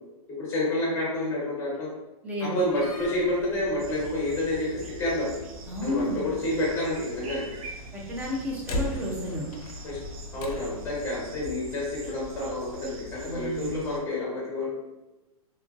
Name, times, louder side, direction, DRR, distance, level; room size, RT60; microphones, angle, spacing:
voice 1, 0.4-1.9 2.5-4.7 5.0-5.3 5.8-7.5 8.7-8.8 9.8-10.0 10.3-14.7, left 1 dB, 15° left, -5 dB, 1.1 m, -29 dB
voice 2, 2.2-2.6 5.7-6.2 7.9-9.5 13.3-13.8, left 1 dB, 10° right, -2 dB, 0.4 m, -31 dB
Slam, 2.6-11.0, left 1 dB, 75° left, 0.5 m, -40 dB
sound 1, 3.8-14.0, right 1 dB, 70° right, 0.6 m, -43 dB
2.9 x 2.4 x 2.4 m, 1.0 s
hypercardioid pair, 145°, 19 cm